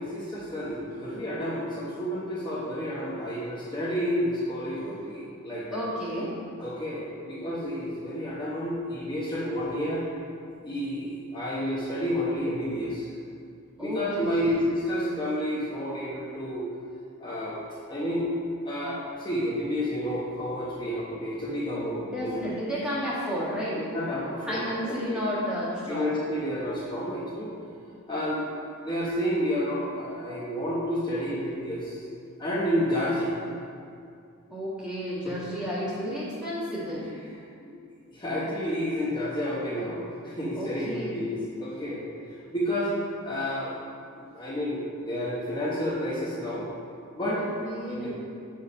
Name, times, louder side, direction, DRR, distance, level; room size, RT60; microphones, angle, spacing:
voice 1, 0.0-5.8 6.6-10.0 10.6-13.1 13.8-16.6 17.2-18.3 18.6-22.4 23.7-25.2 25.9-27.5 28.1-28.4 28.8-32.0 32.4-33.3 35.2-35.4 37.6-37.7 38.1-42.0 42.5-42.9 43.2-43.7 44.1-46.7 47.1-47.4 47.9-48.1, equal, 20° left, -9 dB, 1.1 m, -30 dB
voice 2, 5.7-6.4 13.8-14.5 21.9-23.8 24.5-26.1 34.5-37.1 40.5-41.2 47.2-48.1, equal, 5° right, -9 dB, 1.5 m, -32 dB
6.9 x 4.7 x 5.5 m, 2.4 s
head